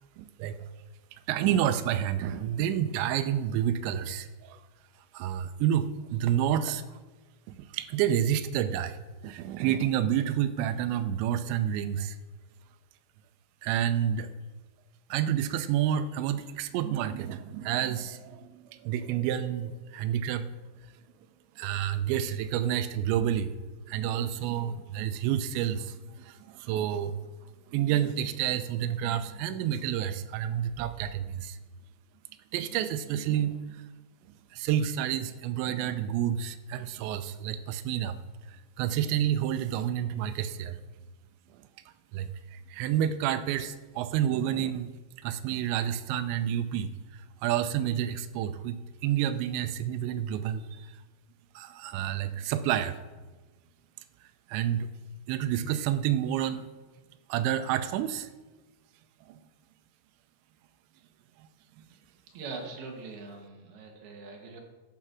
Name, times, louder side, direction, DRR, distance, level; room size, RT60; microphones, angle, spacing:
voice 1, 0.2-0.6 1.3-4.6 5.1-6.8 7.5-9.0 9.2-12.2 13.6-14.3 15.1-20.5 21.6-23.6 23.9-27.2 27.7-31.6 32.5-33.9 34.5-38.2 38.5-40.8 42.1-44.9 45.2-51.0 51.6-53.0 54.5-54.9 55.3-56.7 57.3-58.3 59.3-59.4, right 10 dB, 80° right, 10 dB, 2.8 m, -29 dB
voice 2, 62.3-64.6, right 4 dB, 65° right, 2 dB, 3.1 m, -42 dB
12.5 x 7.6 x 6.1 m, 1.3 s
omnidirectional pair, 5.5 m